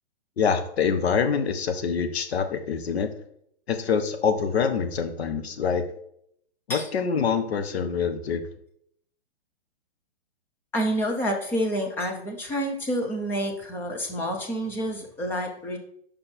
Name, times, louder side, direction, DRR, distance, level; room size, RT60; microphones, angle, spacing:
voice 1, 0.4-3.1 3.7-5.8 6.7-8.4, left 6 dB, 70° left, 8 dB, 1.3 m, -25 dB
voice 2, 10.7-15.8, equal, 5° left, 2 dB, 0.6 m, -28 dB
7.0 x 5.4 x 4.4 m, 0.69 s
hypercardioid pair, 160°, 33 cm